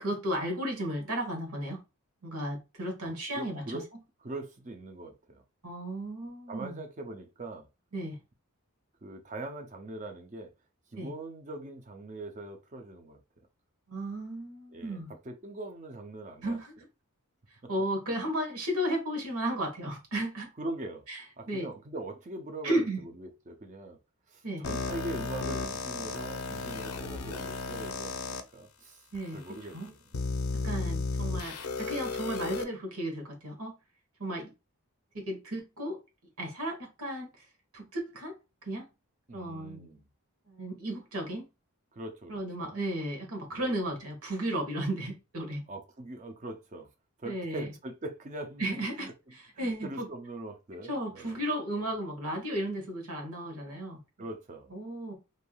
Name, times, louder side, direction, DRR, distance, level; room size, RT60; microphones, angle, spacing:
voice 1, 0.0-1.8 2.2-3.8 5.6-6.8 7.9-8.2 10.9-11.1 13.9-15.1 16.4-16.8 17.7-20.5 21.1-21.2 21.5-21.7 22.6-23.0 24.4-24.6 29.1-29.4 29.7-29.9 30.6-33.7 34.2-34.5 35.1-36.0 36.4-37.3 37.7-38.3 38.6-38.8 39.3-39.9 40.5-41.5 42.3-45.6 47.2-47.7 48.6-50.1 50.9-54.0 54.7-55.1, right 1 dB, 80° right, 1.3 m, -34 dB
voice 2, 3.3-3.8 4.2-5.4 6.5-7.7 9.0-10.5 10.9-13.2 14.7-16.6 17.6-17.7 20.6-21.0 21.4-24.0 24.3-29.1 29.3-30.0 30.6-30.8 39.3-40.0 41.9-42.8 43.5-43.8 45.7-46.9 47.2-49.1 49.5-51.4 51.8-51.9 54.2-54.7, right 2 dB, 35° right, 0.5 m, -42 dB
sound 1, 24.6-28.4 29.1-29.2 30.1-32.6, left 3 dB, 75° left, 0.5 m, -34 dB
3.3 x 2.6 x 2.2 m
head